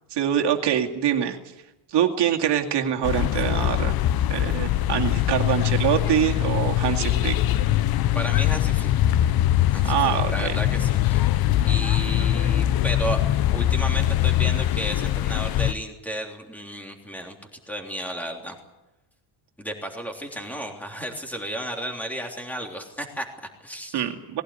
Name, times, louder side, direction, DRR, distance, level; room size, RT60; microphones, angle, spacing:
voice 1, 0.1-1.4 1.9-4.0 4.3-7.4 9.8-10.5 23.9-24.4, right 10 dB, 55° right, 3 dB, 2.4 m, -24 dB
sound 1, 3.0-15.7, left 12 dB, 50° left, 0.7 m, -22 dB
voice 2, 8.2-8.9 9.7-10.0 10.2-11.3 11.6-17.4 17.7-18.6 19.6-24.1, right 1 dB, 5° left, 2 dB, 3.4 m, -33 dB
20.0 x 16.5 x 9.9 m, 1.0 s
cardioid pair, 150°, 49 cm